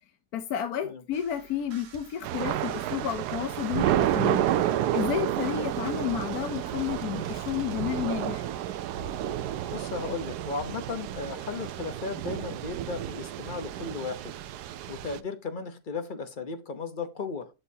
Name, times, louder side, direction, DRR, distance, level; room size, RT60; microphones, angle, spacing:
voice 1, 0.3-4.5 4.9-8.5, left 10 dB, 75° left, 1.2 m, -31 dB
sound 1, 1.1-7.8, right 5 dB, 45° right, 1.1 m, -50 dB
Thunder / Rain, 2.2-15.2, right 11 dB, 90° right, 1.2 m, -30 dB
voice 2, 9.7-14.3 14.9-17.5, left 4 dB, 40° left, 0.9 m, -35 dB
8.9 x 6.6 x 2.8 m
omnidirectional pair, 1.7 m